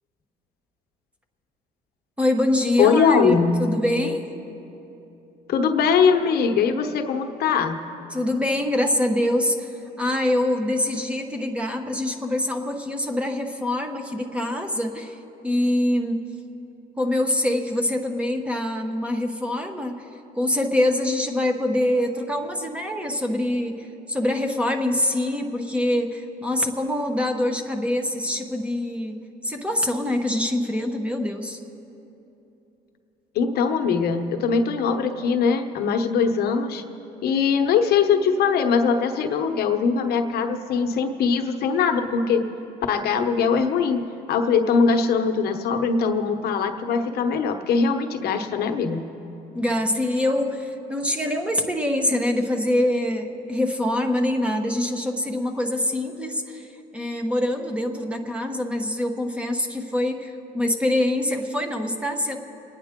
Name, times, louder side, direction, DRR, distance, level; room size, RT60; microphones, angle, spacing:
voice 1, 2.2-4.2 8.1-15.2 15.4-16.3 17.0-20.1 20.3-31.6 49.5-62.4, left 1 dB, 5° right, 4 dB, 1.1 m, -24 dB
voice 2, 2.8-3.6 5.5-7.8 33.3-36.8 37.2-42.4 42.9-44.0 44.3-49.1, left 5 dB, 70° left, 5 dB, 1.0 m, -21 dB
28.0 x 9.7 x 3.7 m, 2.9 s
cardioid pair, 110°, 17 cm